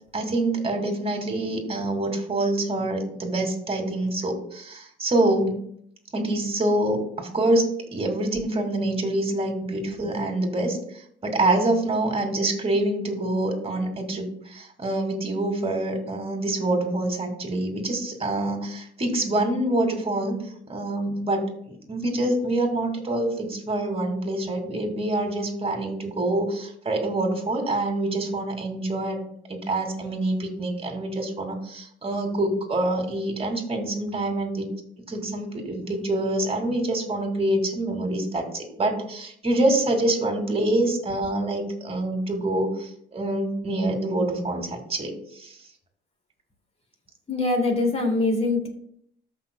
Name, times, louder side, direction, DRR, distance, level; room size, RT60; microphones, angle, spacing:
voice 1, 0.1-5.6 6.1-10.8 11.2-29.2 29.5-34.7 35.1-45.6, right 1 dB, 30° right, 3 dB, 2.3 m, -26 dB
voice 2, 47.3-48.7, left 2 dB, 30° left, 2 dB, 2.6 m, -23 dB
14.0 x 5.8 x 2.3 m, 0.67 s
supercardioid pair, 75°, 20 cm